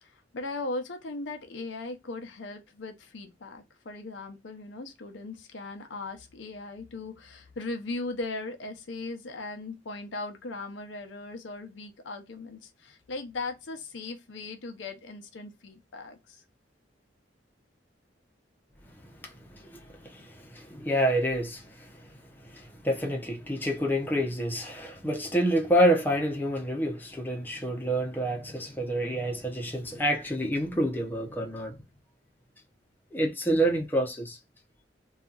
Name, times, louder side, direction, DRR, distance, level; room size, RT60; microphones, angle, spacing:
voice 1, 0.0-16.4, left 3 dB, 90° left, 0.6 m, -38 dB
voice 2, 18.9-31.8 33.1-34.4, right 1 dB, 10° left, 0.7 m, -28 dB
2.7 x 2.4 x 2.3 m
head